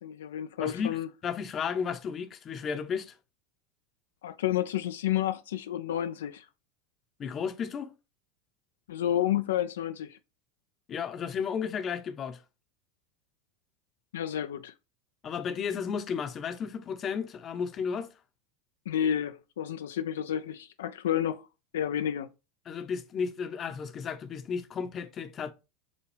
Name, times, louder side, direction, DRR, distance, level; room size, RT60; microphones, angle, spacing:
voice 1, 0.0-1.1 4.2-6.5 8.9-10.2 14.1-14.7 18.9-21.5 21.7-22.3, left 10 dB, 85° left, 0.3 m, -30 dB
voice 2, 0.6-3.1 7.2-7.9 10.9-12.4 15.2-18.1 22.7-25.5, left 6 dB, 35° left, 0.7 m, -33 dB
6.9 x 2.3 x 3.2 m
hypercardioid pair, 100°, 0 cm